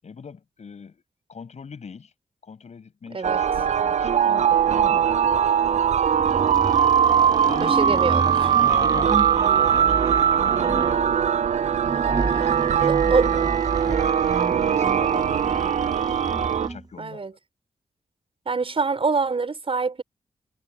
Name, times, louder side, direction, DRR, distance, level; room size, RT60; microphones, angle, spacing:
voice 1, 0.0-1.0 1.3-2.1 2.4-5.1 7.1-9.1 9.7-11.0 12.1-16.2 16.6-17.4, left 5 dB, 65° left, 7.8 m, -41 dB
sound 1, 3.2-16.7, right 8 dB, 65° right, 0.6 m, -21 dB
sound 2, 6.1-16.8, right 3 dB, 30° right, 1.2 m, -31 dB
voice 2, 7.6-8.3 12.9-13.3 17.0-17.3 18.5-20.0, right 4 dB, 45° right, 4.3 m, -25 dB
cardioid pair, 65°, 13 cm